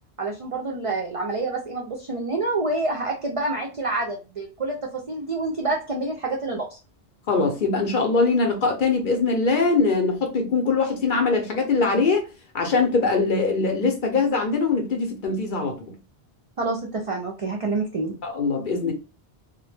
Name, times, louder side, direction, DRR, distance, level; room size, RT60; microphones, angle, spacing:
voice 1, 0.2-6.8 16.6-18.2, right 2 dB, 55° right, 0.3 m, -27 dB
voice 2, 7.3-12.2 12.5-15.9 18.2-18.9, left 4 dB, 55° left, 0.7 m, -22 dB
2.1 x 2.1 x 3.1 m
omnidirectional pair, 1.1 m